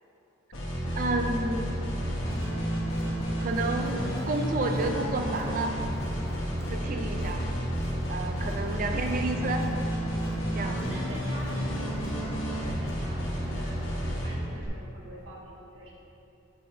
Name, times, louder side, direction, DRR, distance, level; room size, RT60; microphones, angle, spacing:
sound 1, 0.5-14.7, equal, 75° left, 1.2 m, -31 dB
voice 1, 1.0-1.8 3.4-5.7 6.7-7.4 8.1-9.6 10.5-10.8, right 2 dB, 40° right, 4 dB, 0.3 m, -30 dB
Crowd, 2.2-14.0, left 1 dB, 15° left, 0.5 m, -45 dB
voice 2, 6.8-7.3 10.6-15.9, equal, 70° right, -5 dB, 1.3 m, -45 dB
7.5 x 5.6 x 2.7 m, 3.0 s
head